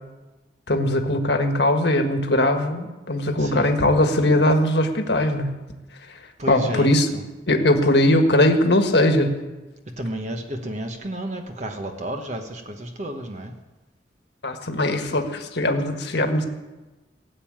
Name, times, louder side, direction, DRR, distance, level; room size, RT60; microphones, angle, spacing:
voice 1, 0.7-5.5 6.5-7.1 7.5-9.3 14.4-16.5, left 1 dB, 70° left, 5 dB, 1.6 m, -20 dB
voice 2, 3.4-3.8 6.4-6.9 10.0-13.5, right 1 dB, 40° right, 4 dB, 1.1 m, -31 dB
18.0 x 7.5 x 8.8 m, 1.1 s
head